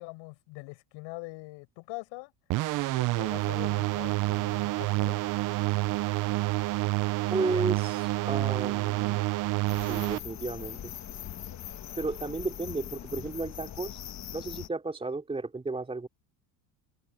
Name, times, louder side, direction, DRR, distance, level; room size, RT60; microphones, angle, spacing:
voice 1, 0.0-2.3 2.9-5.2, left 27 dB, 85° left, 6.3 m, -43 dB
sound 1, 2.5-10.2, right 19 dB, 45° right, 0.5 m, -28 dB
voice 2, 7.3-9.2 9.8-10.9 12.0-14.0 14.3-16.1, right 3 dB, 15° right, 3.2 m, -33 dB
sound 2, 9.7-14.7, left 11 dB, 40° left, 1.3 m, -41 dB
open air
cardioid pair, 140°, 44 cm